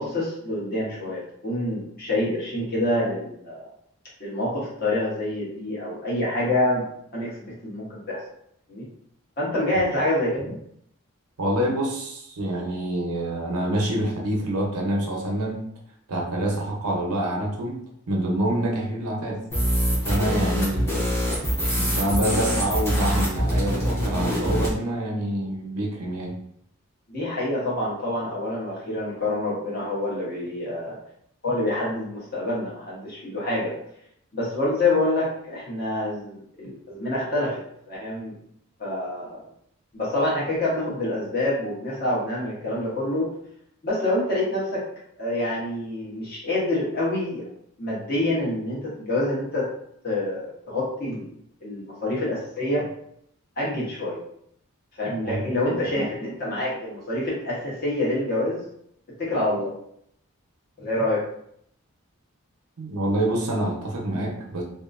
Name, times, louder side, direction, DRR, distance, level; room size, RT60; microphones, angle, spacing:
voice 1, 0.0-3.7 4.2-6.8 7.1-8.2 8.7-8.9 9.4-10.6 27.1-31.0 31.4-33.7 34.3-38.3 38.8-39.4 39.9-43.3 43.8-44.8 45.2-47.4 47.8-49.7 50.0-51.3 51.6-52.8 53.6-54.2 54.9-58.6 59.2-59.7 60.8-61.2, left 1 dB, 45° left, -6 dB, 1.0 m, -27 dB
voice 2, 11.4-15.6 16.1-17.8 18.1-19.4 20.1-21.1 21.7-26.3 55.2-55.7 62.8-64.6, right 1 dB, 90° right, 0 dB, 0.7 m, -26 dB
sound 1, 19.5-24.7, equal, 10° left, 0.7 m, -24 dB
2.7 x 2.4 x 2.5 m, 0.71 s
head